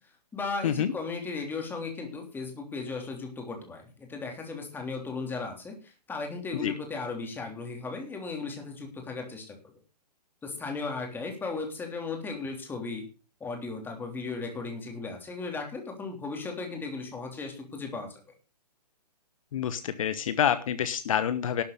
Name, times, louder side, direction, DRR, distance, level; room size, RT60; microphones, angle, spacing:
voice 1, 0.3-9.6 10.4-13.0 13.4-18.2, left 4 dB, 10° left, 3 dB, 3.3 m, -36 dB
voice 2, 19.5-21.6, left 9 dB, 50° left, 12 dB, 1.1 m, -27 dB
12.0 x 8.0 x 6.7 m, 0.34 s
figure-of-eight pair, 130°, 21 cm